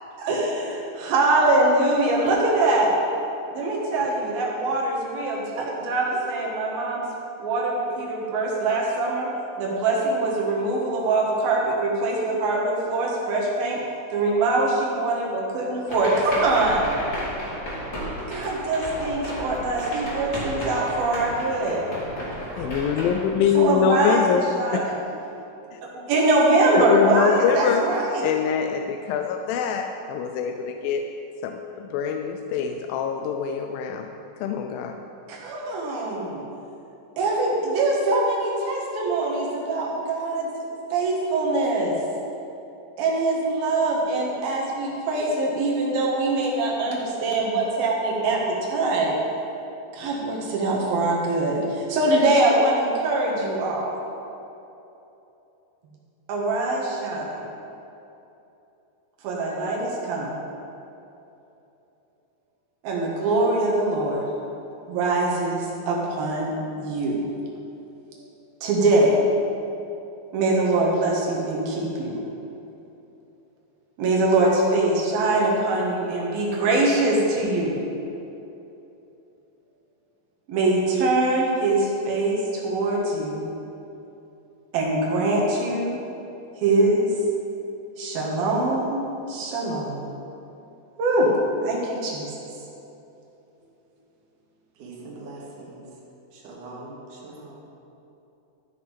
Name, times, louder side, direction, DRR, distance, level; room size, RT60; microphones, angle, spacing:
voice 1, 0.2-2.9 3.5-7.1 7.4-9.3 9.6-13.8 14.1-17.0 18.3-21.9 23.5-24.2 24.6-25.0 25.9-28.2 35.3-36.4 37.2-40.5 40.9-42.0 43.0-49.1 49.9-54.0 56.3-57.5 59.2-60.4 62.8-64.3 64.9-67.2 68.6-69.1 70.3-72.2 74.0-77.8 80.5-83.4 84.7-86.0 86.6-87.1 88.0-89.0 89.3-90.1 91.0-91.3 91.6-92.3, right 2 dB, 80° right, -3 dB, 3.5 m, -23 dB
sound 1, 15.9-24.3, equal, 20° left, 2.4 m, -33 dB
voice 2, 22.6-24.4 24.7-24.9 25.7-25.8 26.7-27.8 28.2-31.1 31.4-34.1 34.4-35.0, left 7 dB, 85° left, 5 dB, 2.3 m, -24 dB
voice 3, 94.7-95.8 96.3-97.6, right 2 dB, 65° right, -4 dB, 3.3 m, -41 dB
13.5 x 6.5 x 5.2 m, 2.9 s
omnidirectional pair, 4.1 m